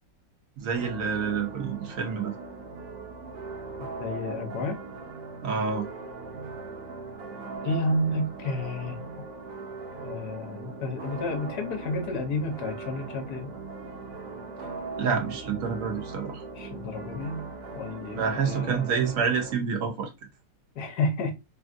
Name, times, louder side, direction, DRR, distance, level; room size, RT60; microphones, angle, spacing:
voice 1, 0.6-2.3 5.4-5.8 15.0-16.4 18.1-20.1, right 6 dB, 60° right, 0.9 m, -28 dB
sound 1, 0.7-19.5, right 4 dB, 80° right, 1.5 m, -39 dB
voice 2, 3.8-4.8 7.6-9.0 10.0-13.5 16.6-17.4 17.7-18.8 20.8-21.3, left 2 dB, 65° left, 1.2 m, -31 dB
3.5 x 2.4 x 2.4 m
omnidirectional pair, 2.0 m